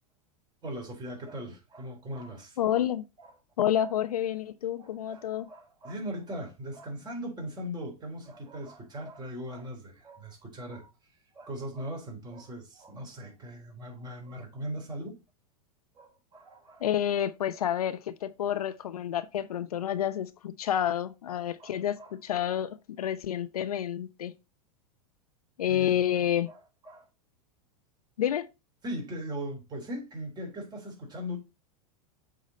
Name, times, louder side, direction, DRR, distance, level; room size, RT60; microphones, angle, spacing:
voice 1, 0.6-2.7 3.2-3.3 4.8-10.9 11.3-15.2 16.0-16.8 21.6-22.1 25.7-26.0 26.5-27.1 28.8-31.4, equal, 25° right, 3.5 m, -39 dB
voice 2, 2.6-3.1 3.6-5.5 16.8-24.3 25.6-26.5 28.2-28.5, left 10 dB, 85° left, 0.7 m, -29 dB
7.5 x 4.0 x 4.1 m
hypercardioid pair, 110°, 19 cm